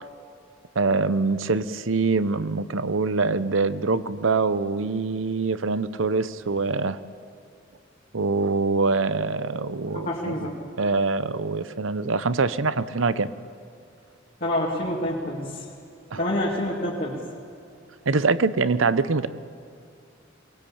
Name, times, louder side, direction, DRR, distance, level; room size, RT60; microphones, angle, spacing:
voice 1, 0.7-7.0 8.1-10.3 10.8-13.3 16.1-16.2 18.1-19.3, right 4 dB, 85° right, 15 dB, 0.8 m, -24 dB
voice 2, 9.9-10.5 14.4-15.7 16.2-17.2, left 1 dB, 50° left, -5 dB, 2.4 m, -27 dB
23.0 x 20.0 x 8.6 m, 2.4 s
head